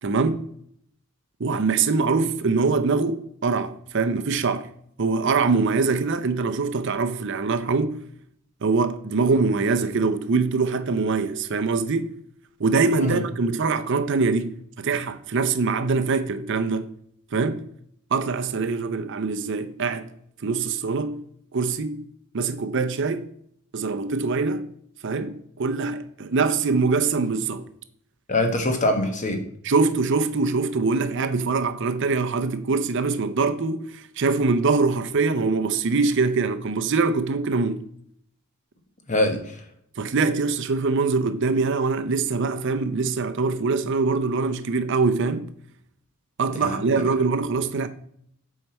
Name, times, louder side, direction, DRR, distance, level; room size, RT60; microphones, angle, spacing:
voice 1, 0.0-0.5 1.4-4.7 5.0-8.0 8.6-12.1 12.6-16.9 17.3-17.6 18.1-20.1 20.4-21.2 21.5-22.0 22.3-23.3 23.7-24.7 25.0-27.6 29.6-37.9 40.0-45.5 46.4-47.9, right 4 dB, 55° right, 0.6 m, -23 dB
voice 2, 28.3-29.4 39.1-39.6 46.6-46.8, left 1 dB, 35° left, 1.1 m, -23 dB
7.8 x 4.7 x 4.2 m
head